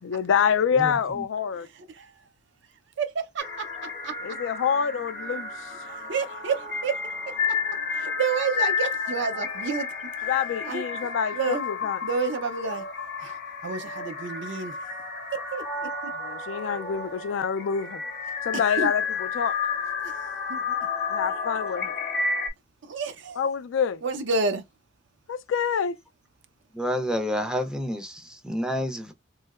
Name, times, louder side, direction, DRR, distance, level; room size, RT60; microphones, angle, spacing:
voice 1, 0.0-1.7 4.2-5.5 10.2-12.0 16.2-18.0 18.4-19.5 21.1-21.9 23.4-24.0 25.3-26.0, left 7 dB, 70° left, 0.3 m, -26 dB
voice 2, 0.7-1.2 26.7-29.1, equal, 5° right, 0.5 m, -29 dB
voice 3, 3.0-3.7 4.0-4.1 5.9-7.0 7.3-7.6 7.9-9.9 10.6-10.8 11.3-11.6 12.0-12.8 13.2-14.8 15.5-15.9 18.8-18.9 20.0-20.1 20.5-20.8 22.8-23.4 24.0-24.6, right 5 dB, 65° right, 0.5 m, -29 dB
sound 1, 3.4-22.5, left 5 dB, 50° left, 0.8 m, -31 dB
3.1 x 2.7 x 2.4 m
head